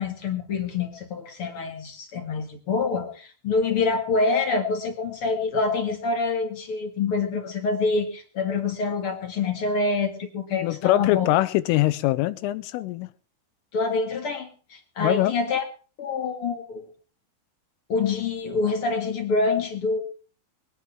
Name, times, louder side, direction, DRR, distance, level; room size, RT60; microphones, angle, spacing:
voice 1, 0.0-11.3 13.7-15.6 16.0-16.9 17.9-20.0, left 4 dB, 65° left, 1.4 m, -26 dB
voice 2, 10.6-13.1 15.0-15.3, left 15 dB, 85° left, 3.4 m, -23 dB
22.5 x 9.9 x 4.7 m
omnidirectional pair, 5.7 m